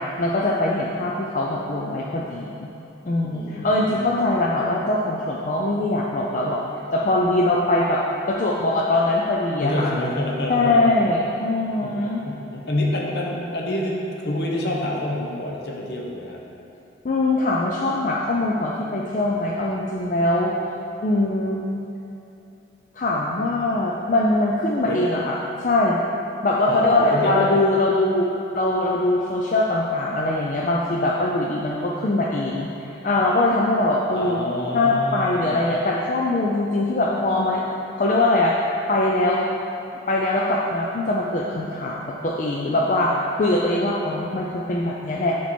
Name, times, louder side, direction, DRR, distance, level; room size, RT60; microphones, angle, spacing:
voice 1, 0.0-2.7 3.1-6.6 6.9-9.9 10.5-12.2 17.0-20.5 21.0-21.7 22.9-26.0 26.4-34.4 34.7-37.6 38.0-39.4 40.1-45.3, left 2 dB, 40° left, -3 dB, 0.4 m, -22 dB
voice 2, 3.3-4.3 9.6-11.0 11.8-11.9 12.2-16.4 24.8-25.0 26.7-27.5 34.1-35.6, left 1 dB, 60° left, -2 dB, 0.9 m, -26 dB
7.0 x 4.5 x 4.3 m, 2.8 s
head